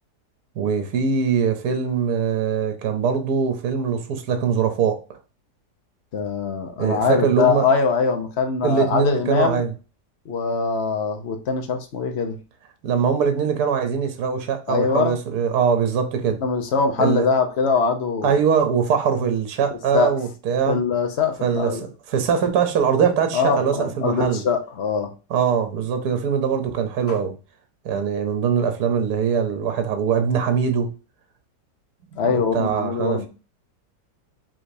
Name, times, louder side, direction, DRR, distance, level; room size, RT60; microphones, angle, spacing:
voice 1, 0.6-5.0 6.8-7.7 8.6-9.7 12.8-16.4 17.0-17.2 18.2-20.8 21.4-21.7 22.1-24.4 25.3-27.3 27.8-30.9 32.3-33.3, right 7 dB, 70° right, 1.3 m, -22 dB
voice 2, 6.1-9.6 10.3-12.4 14.7-15.2 16.4-18.4 19.9-20.1 20.7-21.8 23.3-25.1 27.1-27.2 32.2-33.3, left 5 dB, 50° left, 0.9 m, -22 dB
4.9 x 3.7 x 2.7 m
omnidirectional pair, 1.8 m